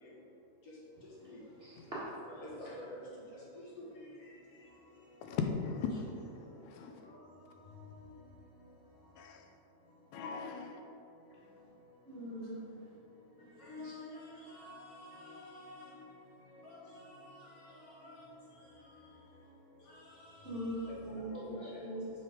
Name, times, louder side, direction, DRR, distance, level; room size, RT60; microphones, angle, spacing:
voice 1, 1.6-2.0 12.1-12.6 13.8-13.9 20.4-21.5 21.8-22.1, right 1 dB, 40° right, -10 dB, 0.8 m, -41 dB
voice 2, 2.3-3.0 3.8-3.9 7.8-7.9 13.6-16.0 16.7-18.1 19.9-20.0 20.8-21.8, left 1 dB, 60° left, -6 dB, 1.9 m, -48 dB
voice 3, 5.2-7.1 9.2-9.4 10.1-10.9, left 5 dB, 80° left, 4 dB, 2.0 m, -38 dB
6.2 x 5.2 x 5.0 m, 2.7 s
omnidirectional pair, 3.7 m